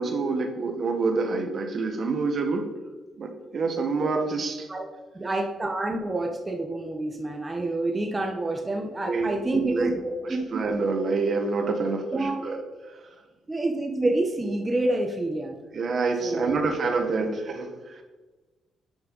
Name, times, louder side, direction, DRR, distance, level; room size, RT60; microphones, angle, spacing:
voice 1, 0.0-2.7 3.2-4.7 9.0-9.9 10.3-12.6 15.7-18.0, right 4 dB, 50° right, 4 dB, 1.2 m, -27 dB
voice 2, 5.1-10.4 12.1-12.4 13.5-15.6 16.2-16.7 17.2-17.3, right 2 dB, 20° right, 2 dB, 0.9 m, -28 dB
8.8 x 5.6 x 4.0 m, 1.2 s
cardioid pair, 90°, 0 cm